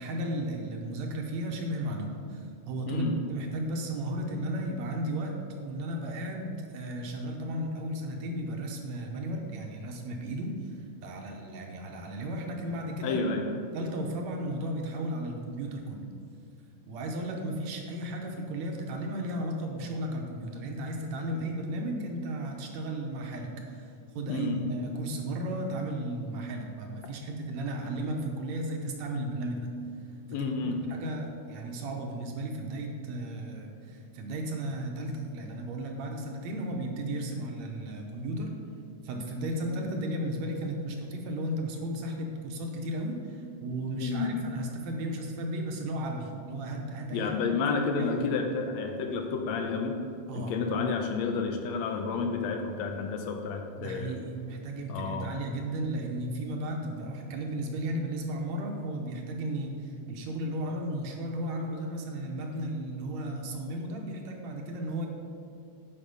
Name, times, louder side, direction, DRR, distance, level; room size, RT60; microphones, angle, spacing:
voice 1, 0.0-5.3 5.6-13.5 13.7-16.1 16.9-29.7 30.3-30.5 30.9-38.6 39.0-47.6 48.0-48.3 50.3-50.9 53.8-65.1, right 1 dB, 70° right, 2 dB, 2.0 m, -34 dB
voice 2, 2.9-3.2 13.0-13.6 24.3-24.6 30.3-30.9 44.0-44.4 47.1-50.1 50.3-54.2 54.9-55.4, left 4 dB, 80° left, 4 dB, 1.7 m, -30 dB
10.0 x 5.2 x 5.3 m, 2.4 s
omnidirectional pair, 3.5 m